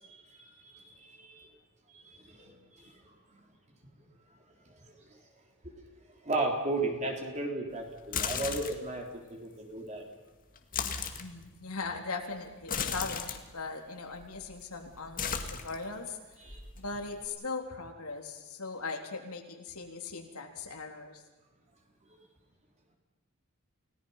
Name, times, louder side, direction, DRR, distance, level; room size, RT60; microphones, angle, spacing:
voice 1, 0.3-1.5 1.9-3.4 4.7-4.9 5.6-5.8 6.2-10.1 16.4-16.6, right 2 dB, 30° right, 1 dB, 3.6 m, -36 dB
sound 1, 8.0-8.9 10.6-11.3 12.6-13.4 14.2-14.6 14.9-16.1 16.5-17.3, left 6 dB, 40° left, 1.9 m, -35 dB
voice 2, 10.8-16.2 16.8-21.2, left 4 dB, 80° left, 3 dB, 3.5 m, -39 dB
30.0 x 18.5 x 5.7 m, 1.2 s
head